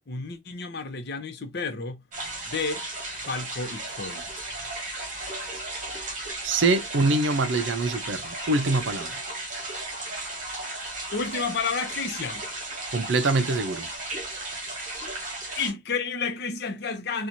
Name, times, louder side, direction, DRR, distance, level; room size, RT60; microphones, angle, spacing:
voice 1, 0.1-2.0 2.5-2.9 3.3-4.5 11.1-12.4 15.6-17.3, left 4 dB, 60° left, 0.8 m, -31 dB
sound 1, 2.1-15.7, right 2 dB, 45° right, 1.8 m, -35 dB
voice 2, 6.4-9.2 12.9-13.9, right 3 dB, 70° right, 0.6 m, -24 dB
4.5 x 2.4 x 2.6 m
head